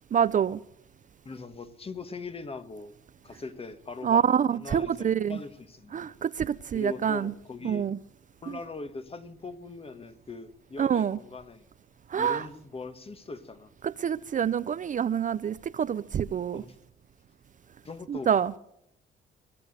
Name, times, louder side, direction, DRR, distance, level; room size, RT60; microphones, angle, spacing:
voice 1, 0.1-0.6 4.0-5.4 5.9-7.3 7.6-8.0 8.5-8.6 10.8-11.2 12.1-12.5 13.8-16.6 18.1-18.5, right 8 dB, 40° right, 0.5 m, -26 dB
voice 2, 1.2-2.9 3.2-5.9 6.7-7.9 8.4-11.6 12.2-13.7 16.5-16.8 17.8-18.3, left 3 dB, 30° left, 1.4 m, -40 dB
20.5 x 7.0 x 7.8 m
cardioid pair, 90°, 20 cm